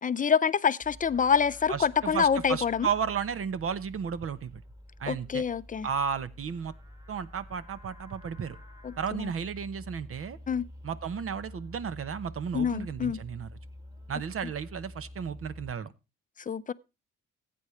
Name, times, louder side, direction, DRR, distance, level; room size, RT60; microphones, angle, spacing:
voice 1, 0.0-2.9 5.1-5.9 8.8-9.3 10.5-10.7 12.5-13.2 16.5-16.7, left 6 dB, 25° left, 0.5 m, -26 dB
Livestock farm animals working animals, 0.8-15.7, left 1 dB, 10° right, 2.2 m, -48 dB
voice 2, 1.7-4.6 5.0-5.4 5.8-6.7 7.1-8.6 9.0-10.4 10.8-13.5 14.1-15.9, right 7 dB, 45° right, 0.9 m, -33 dB
15.0 x 8.6 x 3.1 m
cardioid pair, 90°, 30 cm